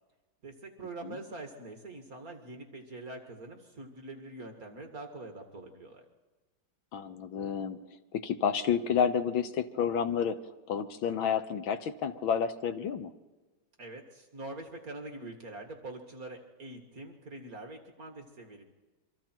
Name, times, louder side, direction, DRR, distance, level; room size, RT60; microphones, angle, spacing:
voice 1, 0.4-6.0 13.8-18.6, right 2 dB, 45° right, 4 dB, 2.2 m, -44 dB
voice 2, 6.9-7.8 8.1-10.4 10.7-13.1, left 7 dB, 75° left, 10 dB, 1.8 m, -30 dB
28.0 x 24.5 x 4.5 m, 1.3 s
omnidirectional pair, 2.2 m